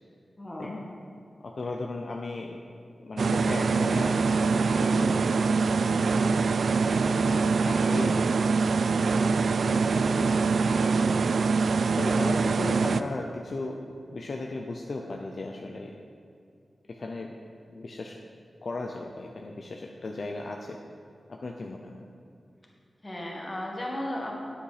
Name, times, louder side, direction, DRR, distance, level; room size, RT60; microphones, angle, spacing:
voice 1, 0.4-0.8 6.8-7.1 23.0-24.3, left 1 dB, 20° left, -2 dB, 1.8 m, -35 dB
voice 2, 1.4-2.6 3.0-6.4 6.9-8.4 9.6-10.9 12.0-13.8 14.1-15.9 16.9-17.4 17.7-18.2 18.6-20.8 21.3-22.0, left 2 dB, 50° left, 1 dB, 0.6 m, -36 dB
sound 1, 3.2-13.0, right 4 dB, 75° right, 0.3 m, -24 dB
9.6 x 8.3 x 5.0 m, 2.5 s
wide cardioid pair, 145°, 0 cm